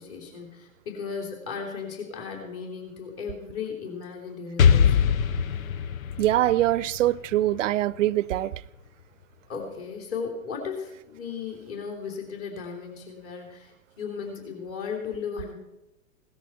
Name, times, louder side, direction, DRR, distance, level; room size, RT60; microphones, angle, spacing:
voice 1, 0.0-5.0 9.5-13.7 14.0-15.6, left 5 dB, 35° left, 3.3 m, -36 dB
Explosion, 4.6-8.4, left 7 dB, 80° left, 0.7 m, -23 dB
voice 2, 6.2-8.5, right 14 dB, 65° right, 0.6 m, -23 dB
17.5 x 13.5 x 4.5 m
hypercardioid pair, 105°, 41 cm